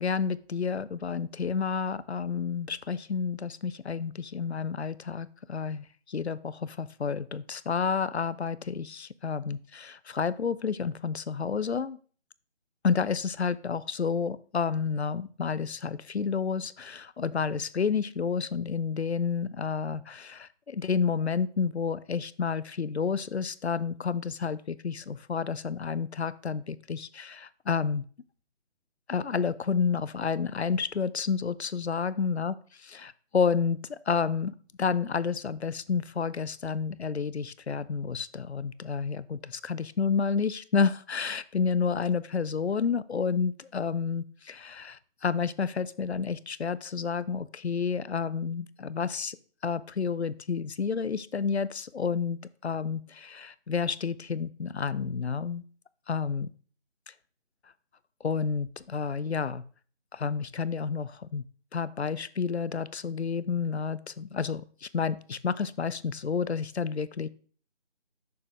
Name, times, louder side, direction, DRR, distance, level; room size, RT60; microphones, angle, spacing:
voice 1, 0.0-12.0 12.8-28.0 29.1-33.8 34.1-49.4 49.6-55.6 56.1-56.5 58.2-59.6 60.1-61.4 61.7-67.3, left 6 dB, 70° left, 17 dB, 0.6 m, -30 dB
6.6 x 6.4 x 3.5 m, 0.43 s
figure-of-eight pair, 175°, 35 cm